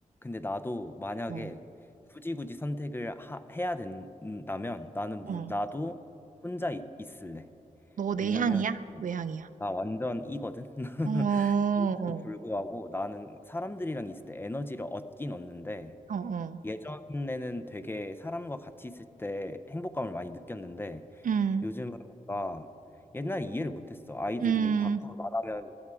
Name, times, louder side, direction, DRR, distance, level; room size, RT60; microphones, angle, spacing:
voice 1, 0.2-1.6 2.1-5.9 6.4-7.5 8.2-8.6 8.9-9.0 9.6-16.0 16.6-21.0 21.6-21.9 22.3-22.7 23.1-25.7, left 1 dB, 15° left, 10 dB, 0.5 m, -36 dB
voice 2, 8.0-9.5 11.0-12.2 16.1-16.6 21.2-21.7 24.4-25.0, right 6 dB, 75° right, 13 dB, 0.5 m, -28 dB
16.0 x 12.0 x 4.8 m, 2.9 s
wide cardioid pair, 150°, 14 cm